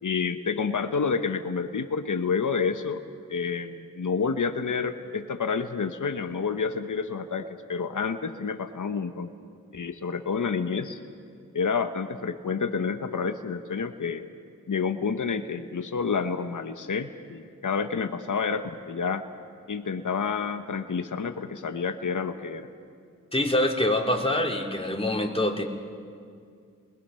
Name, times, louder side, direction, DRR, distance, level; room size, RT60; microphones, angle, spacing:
voice 1, 0.0-3.0 3.3-9.3 9.7-11.0 11.5-14.3 14.7-19.2 19.7-22.7, left 5 dB, 65° left, 7 dB, 1.1 m, -29 dB
voice 2, 23.3-25.6, left 1 dB, 15° left, 0 dB, 3.3 m, -25 dB
29.0 x 21.0 x 5.7 m, 2.2 s
cardioid pair, 40°, 33 cm